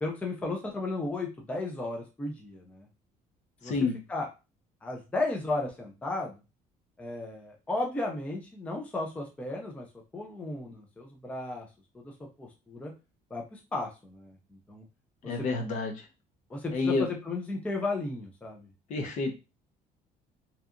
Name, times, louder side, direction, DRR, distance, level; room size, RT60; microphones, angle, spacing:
voice 1, 0.0-2.9 3.6-4.3 4.8-6.4 7.0-9.9 10.1-11.7 11.9-12.9 13.3-14.8 15.2-15.3 16.5-18.7, left 2 dB, 10° left, 1 dB, 0.4 m, -34 dB
voice 2, 3.6-4.0 15.2-16.0 16.7-17.0 18.9-19.3, left 3 dB, 55° left, 5 dB, 0.6 m, -29 dB
2.7 x 2.3 x 2.4 m, 0.29 s
cardioid pair, 165°, 15 cm